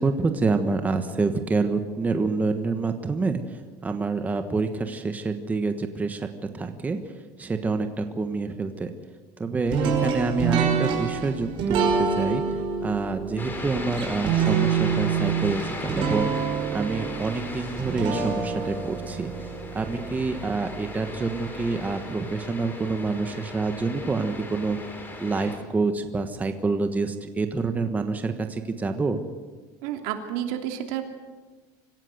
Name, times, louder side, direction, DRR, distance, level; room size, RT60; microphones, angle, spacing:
voice 1, 0.0-6.3 6.5-8.9 9.4-12.4 12.8-16.3 16.7-19.5 19.7-24.8 25.2-29.2, right 3 dB, 15° right, 7 dB, 1.3 m, -27 dB
sound 1, 9.7-20.8, right 6 dB, 50° right, 5.5 m, -27 dB
sound 2, 13.4-25.6, left 2 dB, 20° left, 4.0 m, -37 dB
voice 2, 29.8-31.1, right 10 dB, 80° right, 4 dB, 2.9 m, -30 dB
25.5 x 15.5 x 7.9 m, 1.4 s
cardioid pair, 150°, 11 cm